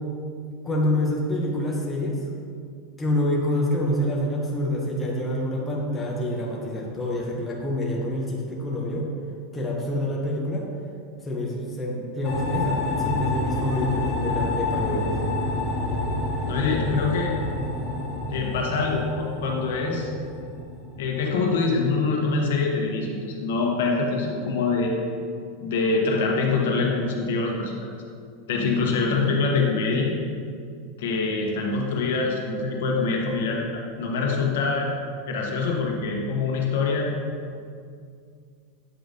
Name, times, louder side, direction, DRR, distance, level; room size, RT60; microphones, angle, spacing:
voice 1, 0.6-2.2 3.0-9.1 9.5-10.7 11.2-15.1, left 1 dB, 10° left, -3 dB, 0.6 m, -27 dB
sound 1, 12.2-21.8, left 2 dB, 45° left, 1.2 m, -28 dB
voice 2, 16.4-17.4 18.3-20.1 21.0-25.0 25.6-27.9 28.5-30.1 31.0-33.6 34.0-34.9 35.3-37.1, left 4 dB, 80° left, 0 dB, 1.0 m, -24 dB
7.7 x 4.9 x 2.6 m, 2.3 s
supercardioid pair, 175°, 0 cm